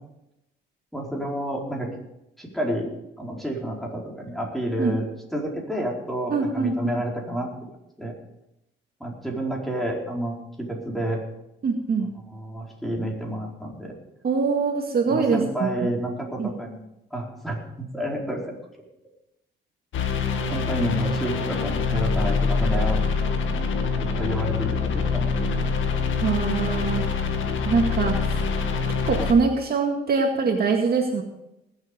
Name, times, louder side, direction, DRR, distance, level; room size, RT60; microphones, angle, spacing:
voice 1, 0.9-1.9 2.4-2.9 3.2-5.1 5.3-7.5 8.0-8.1 9.0-11.2 12.3-13.9 15.1-16.9 17.1-18.4 20.5-23.0 23.9-25.4, right 1 dB, ahead, -2 dB, 4.6 m, -29 dB
voice 2, 6.3-6.9 11.6-12.1 14.2-15.9 16.4-16.5 26.2-27.1 27.6-28.4 29.0-31.2, right 4 dB, 50° right, 2 dB, 2.2 m, -23 dB
sound 1, 19.9-29.3, left 4 dB, 75° left, 1.9 m, -25 dB
20.0 x 8.3 x 5.3 m, 0.88 s
cardioid pair, 90°, 20 cm